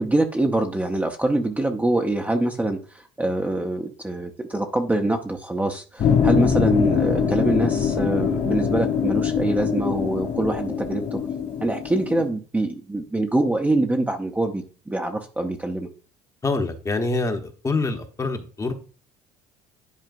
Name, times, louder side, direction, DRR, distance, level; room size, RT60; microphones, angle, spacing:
voice 1, 0.0-11.2 11.6-15.9, right 2 dB, 10° right, 3 dB, 0.8 m, -24 dB
sound 1, 6.0-12.3, left 7 dB, 60° left, 2.1 m, -23 dB
voice 2, 16.4-18.7, left 3 dB, 25° left, 5 dB, 1.0 m, -25 dB
10.5 x 4.3 x 2.5 m, 0.38 s
supercardioid pair, 90°, 14 cm